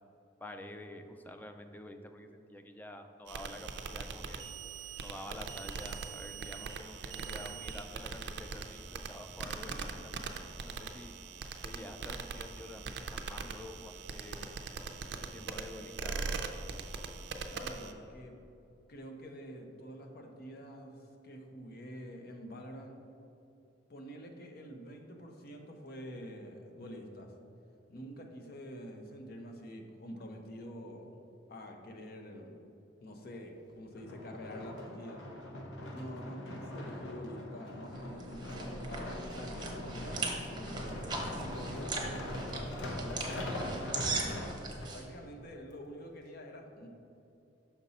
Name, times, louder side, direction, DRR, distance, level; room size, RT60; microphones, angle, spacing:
voice 1, 0.4-4.5 5.0-10.1 10.6-11.1 11.6-14.5 15.2-16.4, left 1 dB, 10° left, 6 dB, 0.3 m, -48 dB
sound 1, 3.3-17.9, right 4 dB, 65° right, 0.4 m, -41 dB
voice 2, 17.5-18.4 18.9-23.0 23.9-27.3 27.9-31.1 31.5-32.6 33.0-35.2 35.9-40.9 41.3-44.5 44.9-46.9, equal, 55° left, 3 dB, 0.7 m, -47 dB
sound 2, 33.9-44.9 45.6-45.7, left 1 dB, 80° left, 0.9 m, -41 dB
sound 3, 37.9-45.0, right 3 dB, 25° right, 0.8 m, -39 dB
5.9 x 5.3 x 4.1 m, 2.7 s
head